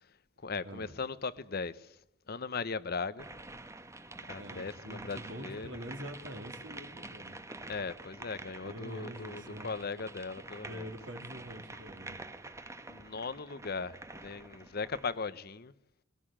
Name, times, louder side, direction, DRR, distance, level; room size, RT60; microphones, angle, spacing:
voice 1, 0.4-2.0 2.3-3.3 4.3-5.8 7.7-10.9 12.9-15.7, left 4 dB, 55° left, 0.9 m, -38 dB
sound 1, 3.2-15.3, right 2 dB, 15° right, 1.1 m, -47 dB
voice 2, 4.4-7.4 8.6-9.7 10.5-12.2, equal, 70° right, 3.1 m, -45 dB
21.5 x 18.5 x 8.7 m
head